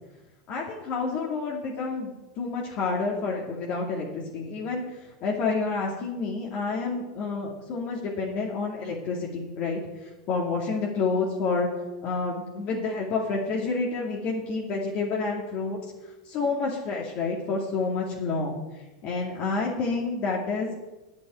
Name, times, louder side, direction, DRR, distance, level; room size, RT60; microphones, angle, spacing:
voice 1, 0.5-4.8 5.2-9.8 10.3-11.7 12.0-15.8 16.3-18.6 19.0-20.8, left 4 dB, 50° left, -2 dB, 2.3 m, -29 dB
8.5 x 8.3 x 9.0 m, 1.1 s
hypercardioid pair, 100°, 3 cm